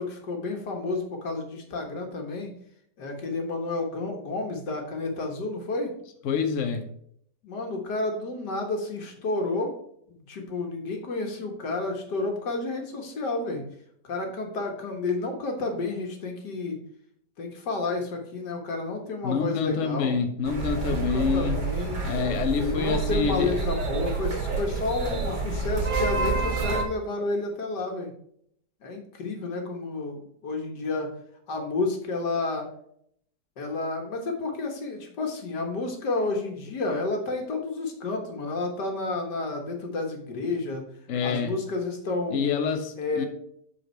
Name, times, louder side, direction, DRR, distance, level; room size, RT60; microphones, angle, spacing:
voice 1, 0.0-2.5 3.0-5.9 7.4-9.7 10.2-13.6 14.0-16.8 17.4-20.2 20.8-22.0 22.6-28.1 28.8-31.1 31.5-32.7 33.6-40.8 41.2-42.4 43.0-43.3, left 3 dB, 85° left, 3 dB, 2.1 m, -30 dB
voice 2, 6.2-6.9 19.2-21.6 22.0-23.6 41.1-41.5 42.3-43.2, left 6 dB, 55° left, 6 dB, 1.1 m, -27 dB
sound 1, 20.4-26.8, right 4 dB, 60° right, 1.7 m, -28 dB
8.1 x 4.4 x 4.4 m, 0.68 s
omnidirectional pair, 1.8 m